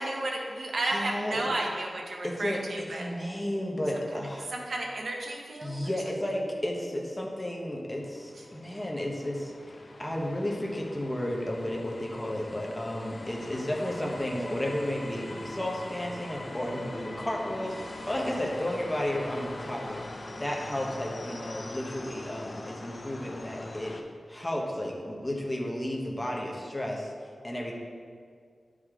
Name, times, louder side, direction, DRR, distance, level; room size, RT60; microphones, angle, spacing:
voice 1, 0.0-3.1 4.5-6.2, right 2 dB, 70° right, 0 dB, 1.1 m, -33 dB
voice 2, 0.9-1.5 2.2-2.6 2.9-4.5 5.6-20.0 20.4-23.9 24.3-27.1 27.4-27.7, left 1 dB, 15° left, -1 dB, 1.2 m, -33 dB
sound 1, 7.9-24.0, left 2 dB, 45° left, 0.6 m, -42 dB
10.5 x 5.0 x 3.8 m, 2.1 s
wide cardioid pair, 110°, 0 cm